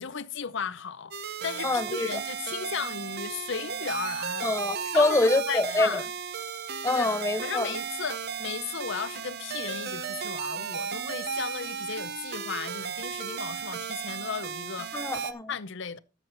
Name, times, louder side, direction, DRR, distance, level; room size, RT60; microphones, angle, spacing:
voice 1, 0.0-4.5 4.9-6.1 6.9-7.1 7.4-15.0 15.5-16.0, left 6 dB, 55° left, 0.6 m, -35 dB
sound 1, 1.1-15.3, right 7 dB, 45° right, 0.8 m, -35 dB
voice 2, 1.6-2.1 4.4-6.0 6.8-7.8 14.9-15.5, left 2 dB, 15° left, 0.5 m, -25 dB
13.0 x 7.4 x 3.9 m
head